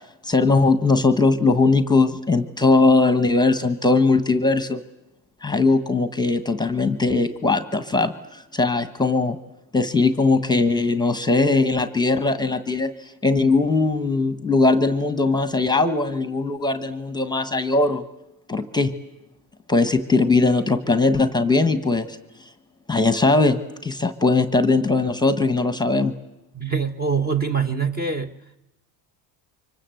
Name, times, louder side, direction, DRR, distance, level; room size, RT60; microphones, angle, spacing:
voice 1, 0.2-4.8 5.4-9.4 9.7-12.9 13.2-18.0 18.5-18.9 19.7-22.2 22.9-26.1, left 3 dB, 10° left, 1.2 m, -20 dB
voice 2, 26.5-28.3, right 5 dB, 20° right, 1.2 m, -24 dB
29.5 x 25.0 x 7.8 m
cardioid pair, 135°, 46 cm